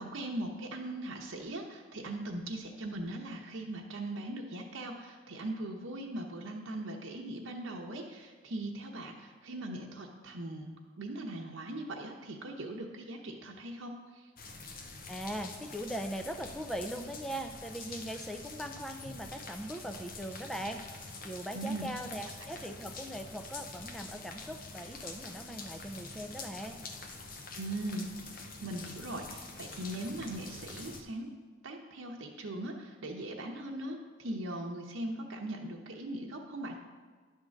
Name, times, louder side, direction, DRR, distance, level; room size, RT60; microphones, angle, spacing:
voice 1, 0.0-14.2 21.5-21.9 27.5-31.3 31.6-36.8, right 1 dB, 85° right, 0 dB, 0.9 m, -40 dB
sound 1, 14.4-31.0, left 3 dB, 45° left, 0.8 m, -46 dB
voice 2, 15.1-20.8 21.2-26.8, right 1 dB, ahead, 5 dB, 0.4 m, -40 dB
10.5 x 3.7 x 6.4 m, 1.5 s
head